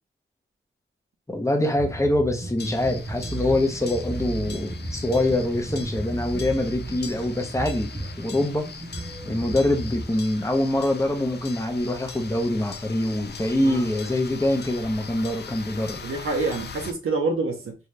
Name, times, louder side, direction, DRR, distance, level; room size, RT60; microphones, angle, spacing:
voice 1, 1.3-8.7 9.3-16.0, left 1 dB, 15° left, 0.8 m, -24 dB
sound 1, 1.7-10.0, right 2 dB, 30° right, 0.8 m, -34 dB
sound 2, 2.6-16.9, left 5 dB, 55° left, 0.4 m, -40 dB
voice 2, 13.5-13.9 16.0-17.8, right 3 dB, 80° right, 0.8 m, -27 dB
2.8 x 2.5 x 3.3 m
cardioid pair, 60°, 21 cm